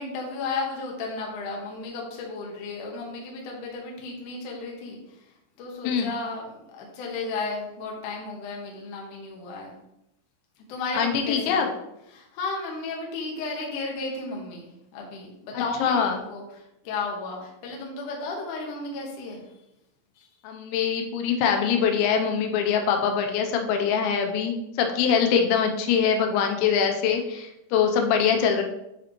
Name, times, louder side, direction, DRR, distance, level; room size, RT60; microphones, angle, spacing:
voice 1, 0.0-5.2 5.6-9.7 10.7-11.7 12.1-19.4 20.2-20.3, left 3 dB, 65° left, -1 dB, 2.1 m, -34 dB
voice 2, 11.0-11.7 15.8-16.2 20.4-28.6, left 7 dB, 90° left, 3 dB, 3.1 m, -23 dB
9.1 x 5.0 x 3.0 m, 0.86 s
omnidirectional pair, 5.2 m